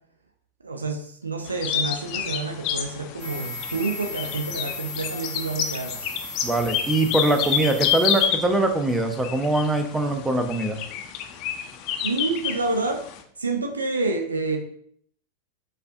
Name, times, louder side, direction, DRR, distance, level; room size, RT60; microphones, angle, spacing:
voice 1, 0.6-6.1 12.0-13.0 13.4-14.6, right 3 dB, 75° right, 4 dB, 0.5 m, -28 dB
sound 1, 1.5-13.2, left 8 dB, 40° left, 0.5 m, -29 dB
sound 2, 3.2-8.3, left 5 dB, 55° right, 1.7 m, -36 dB
voice 2, 6.4-10.8, right 2 dB, 10° right, 7 dB, 0.5 m, -23 dB
6.5 x 2.4 x 2.4 m, 0.64 s
figure-of-eight pair, 90°, 0 cm